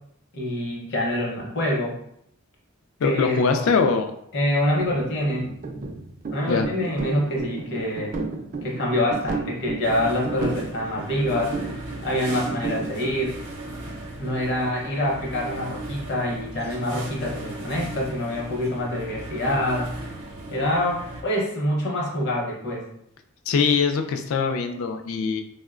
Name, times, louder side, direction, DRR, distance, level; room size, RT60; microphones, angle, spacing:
voice 1, 0.3-1.9 3.0-3.7 4.3-5.5 6.3-8.1 8.6-13.4 14.2-19.9 20.5-22.8, left 1 dB, 50° left, -1 dB, 0.8 m, -26 dB
voice 2, 3.0-4.1 6.5-6.7 23.5-25.4, left 5 dB, 65° left, 7 dB, 0.3 m, -22 dB
sound 1, 4.7-13.3, right 3 dB, 35° right, 0.3 m, -33 dB
sound 2, 9.8-21.2, right 1 dB, 65° right, 0.7 m, -38 dB
3.6 x 2.1 x 2.4 m, 0.72 s
head